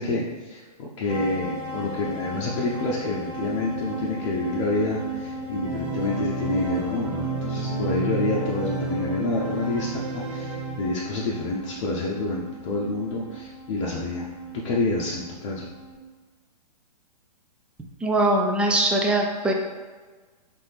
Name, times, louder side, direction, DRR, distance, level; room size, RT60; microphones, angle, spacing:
voice 1, 0.0-14.2 14.5-15.7, left 2 dB, 45° left, -4 dB, 0.7 m, -28 dB
sound 1, 1.1-16.0, right 2 dB, 30° right, 1.0 m, -37 dB
Organ, 5.6-11.4, right 3 dB, 45° right, 1.3 m, -31 dB
voice 2, 18.0-19.5, right 1 dB, 5° right, 1 dB, 0.3 m, -21 dB
4.3 x 3.4 x 3.4 m, 1.4 s
figure-of-eight pair, 120°, 21 cm